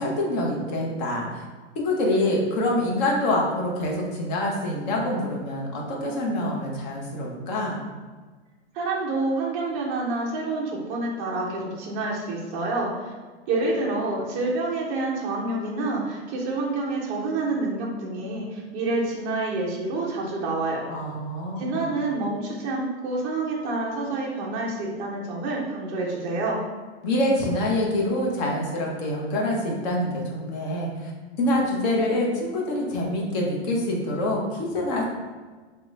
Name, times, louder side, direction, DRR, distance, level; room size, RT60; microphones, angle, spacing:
voice 1, 0.0-1.4 1.7-7.8 20.9-21.9 27.0-31.1 31.4-35.0, left 1 dB, 40° left, -1 dB, 0.8 m, -26 dB
voice 2, 8.7-13.1 13.5-20.9 21.6-26.6, right 2 dB, 20° right, -3 dB, 0.4 m, -28 dB
3.6 x 2.2 x 3.1 m, 1.4 s
supercardioid pair, 155°, 33 cm